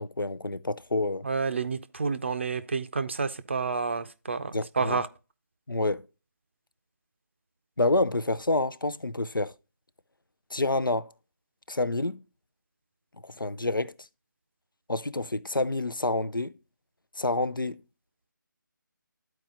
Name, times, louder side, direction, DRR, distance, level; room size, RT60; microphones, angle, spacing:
voice 1, 0.0-1.3 4.5-5.0 5.7-6.0 7.8-9.5 10.5-11.1 11.7-12.2 13.2-13.9 14.9-16.6 17.2-17.8, left 2 dB, 90° left, 0.6 m, -28 dB
voice 2, 1.2-5.1, right 4 dB, 35° right, 0.5 m, -29 dB
13.0 x 4.6 x 2.5 m
figure-of-eight pair, 155°, 11 cm